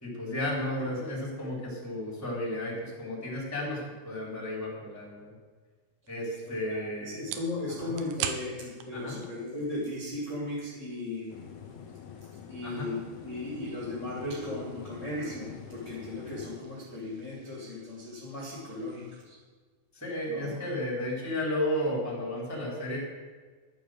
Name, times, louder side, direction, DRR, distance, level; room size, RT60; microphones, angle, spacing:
voice 1, 0.0-5.3 6.1-7.3 7.8-7.9 8.9-9.2 12.6-12.9 19.9-23.0, left 1 dB, 5° left, -4 dB, 3.4 m, -33 dB
sound 1, 6.1-19.3, right 9 dB, 85° right, 3.1 m, -46 dB
voice 2, 6.4-11.4 12.5-19.4 20.3-20.5, left 2 dB, 25° left, -7 dB, 3.0 m, -36 dB
sound 2, 11.3-16.6, left 7 dB, 80° left, 3.3 m, -46 dB
12.0 x 9.1 x 6.6 m, 1.4 s
omnidirectional pair, 5.5 m